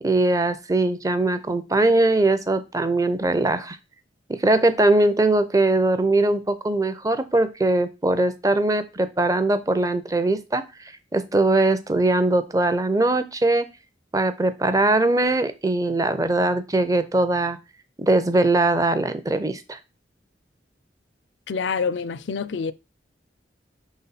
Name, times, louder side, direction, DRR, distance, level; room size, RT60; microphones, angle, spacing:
voice 1, 0.0-3.8 4.3-10.6 11.1-13.7 14.1-17.6 18.0-19.8, right 2 dB, 20° right, 0.6 m, -21 dB
voice 2, 21.5-22.7, left 5 dB, 75° left, 0.5 m, -26 dB
6.0 x 4.1 x 4.0 m
head